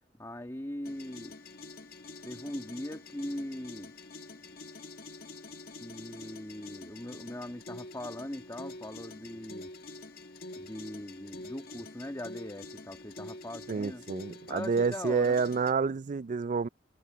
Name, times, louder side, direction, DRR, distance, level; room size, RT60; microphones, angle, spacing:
voice 1, 0.2-1.4 2.2-3.9 5.8-9.7 10.6-14.0 14.5-15.4, left 1 dB, 15° left, 1.9 m, -40 dB
sound 1, 0.8-15.7, left 2 dB, 60° left, 1.8 m, -47 dB
voice 2, 13.7-16.7, right 5 dB, 45° right, 0.4 m, -29 dB
head